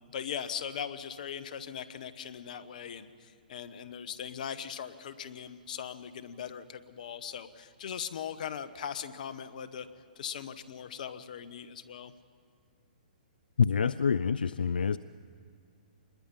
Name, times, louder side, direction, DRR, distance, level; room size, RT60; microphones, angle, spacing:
voice 1, 0.1-9.9 10.2-12.1, left 8 dB, 60° left, 12 dB, 1.2 m, -40 dB
voice 2, 13.6-15.0, left 6 dB, 85° left, 16 dB, 0.4 m, -26 dB
26.0 x 21.0 x 5.6 m, 2.4 s
hypercardioid pair, 135°, 5 cm